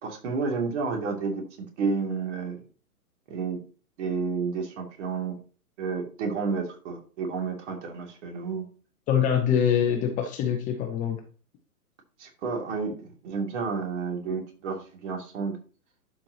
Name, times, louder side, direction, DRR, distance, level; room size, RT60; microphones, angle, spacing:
voice 1, 0.0-1.4 1.8-2.6 3.3-3.6 4.0-5.4 5.8-8.7 12.2-15.6, right 5 dB, 45° right, 2 dB, 2.7 m, -30 dB
voice 2, 9.1-11.2, left 8 dB, 15° left, 3 dB, 0.8 m, -24 dB
12.0 x 4.8 x 2.9 m, 0.37 s
hypercardioid pair, 130°, 47 cm